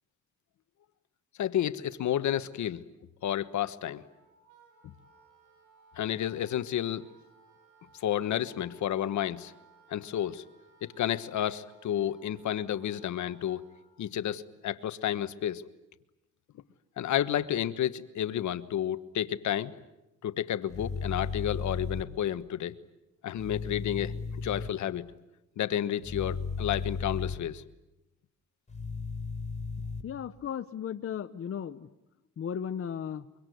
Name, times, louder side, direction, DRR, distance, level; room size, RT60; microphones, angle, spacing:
voice 1, 1.4-2.9 3.2-4.0 6.0-7.0 7.9-9.5 9.9-10.4 10.8-13.6 14.0-15.6 17.0-19.7 20.2-22.7 23.2-24.1 24.4-25.1 25.6-27.6, left 11 dB, 70° left, 12 dB, 1.3 m, -31 dB
Wind instrument woodwind instrument, 3.9-13.9, right 4 dB, 85° right, 7.8 m, -61 dB
sound 1, 20.7-22.0 23.4-24.7 26.0-27.4 28.7-30.0, left 4 dB, 25° left, 3.7 m, -35 dB
voice 2, 30.0-31.9 32.4-33.3, left 8 dB, 45° left, 10 dB, 1.0 m, -35 dB
24.5 x 24.5 x 9.4 m, 0.92 s
cardioid pair, 90°, 30 cm